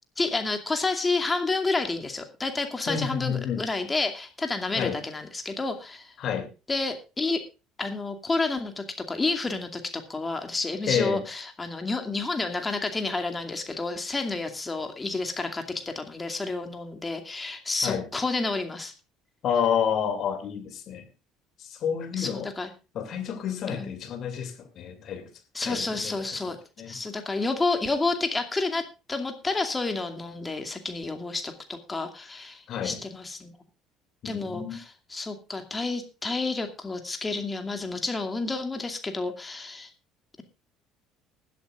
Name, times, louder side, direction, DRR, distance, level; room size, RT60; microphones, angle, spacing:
voice 1, 0.2-6.1 6.7-7.4 7.8-18.9 22.2-22.7 23.7-23.9 25.5-26.6 26.9-33.5 34.2-39.9, left 3 dB, 20° left, 5 dB, 2.4 m, -30 dB
voice 2, 2.9-3.7 4.7-5.0 6.2-6.5 10.9-11.2 17.8-18.1 19.4-21.0 21.6-22.5 22.9-25.3 25.6-27.0 32.7-33.0 34.2-34.8, left 8 dB, 50° left, 8 dB, 2.7 m, -29 dB
20.0 x 11.0 x 2.5 m, 0.30 s
figure-of-eight pair, 60°, 0 cm